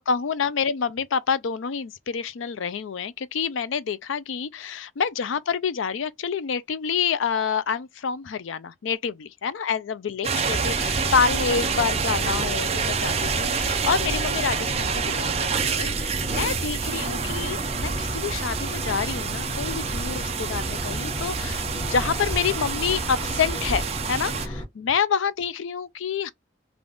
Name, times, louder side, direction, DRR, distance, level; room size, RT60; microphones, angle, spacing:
voice 1, 0.0-26.3, left 6 dB, 85° left, 0.4 m, -27 dB
sound 1, 10.2-24.5, right 6 dB, 30° right, 0.5 m, -28 dB
sound 2, 10.4-24.7, equal, 25° left, 1.1 m, -32 dB
3.4 x 2.4 x 3.8 m
head